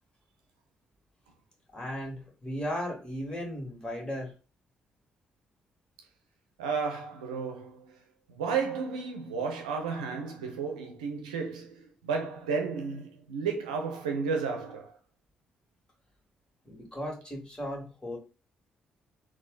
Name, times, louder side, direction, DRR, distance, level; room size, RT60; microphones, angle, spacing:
voice 1, 1.7-4.3 16.6-18.2, equal, 20° left, 2.1 m, -36 dB
voice 2, 6.6-8.0 8.3-14.9, right 5 dB, 85° right, 0.7 m, -33 dB
4.0 x 2.5 x 3.9 m
hypercardioid pair, 45°, 4 cm